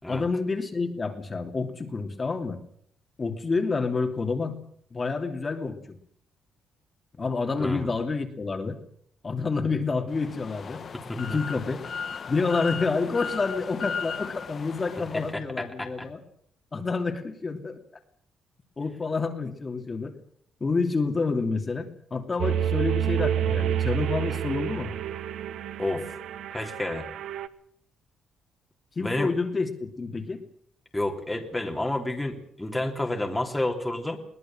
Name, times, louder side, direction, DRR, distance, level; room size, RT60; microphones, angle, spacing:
voice 1, 0.1-2.6 3.2-4.6 4.9-6.0 7.2-8.8 9.2-10.8 11.1-11.8 12.3-16.2 16.7-17.8 18.8-20.1 20.6-24.9 28.9-30.4, left 4 dB, 30° left, 4 dB, 3.0 m, -28 dB
voice 2, 7.6-7.9 11.1-11.4 15.1-16.1 25.8-26.2 26.5-27.1 29.0-29.3 30.9-34.2, left 1 dB, 10° left, 3 dB, 3.2 m, -30 dB
sound 1, 10.1-15.3, left 6 dB, 45° left, 1.5 m, -36 dB
sound 2, 22.4-27.5, right 10 dB, 75° right, 1.1 m, -28 dB
22.0 x 18.5 x 7.5 m, 0.63 s
cardioid pair, 90°, 0 cm